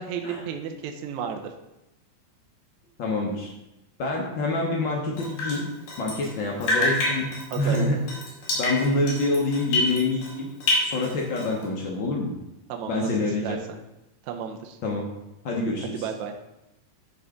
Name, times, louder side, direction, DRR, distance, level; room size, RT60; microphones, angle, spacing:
voice 1, 0.0-1.4 6.7-6.9 7.5-7.9 12.7-13.1 13.4-13.6 14.2-14.8 15.8-16.3, right 7 dB, 75° right, 4 dB, 1.9 m, -33 dB
voice 2, 3.0-3.5 4.0-5.6 6.0-7.3 7.6-8.0 8.5-10.5 10.8-12.3 12.9-13.6 14.8-15.1 15.4-15.9, left 2 dB, 90° left, -1 dB, 1.0 m, -26 dB
Drip, 5.2-6.4 6.6-10.3 10.6-11.6, left 1 dB, 70° left, 3.6 m, -27 dB
11.0 x 3.9 x 5.0 m, 0.94 s
omnidirectional pair, 3.8 m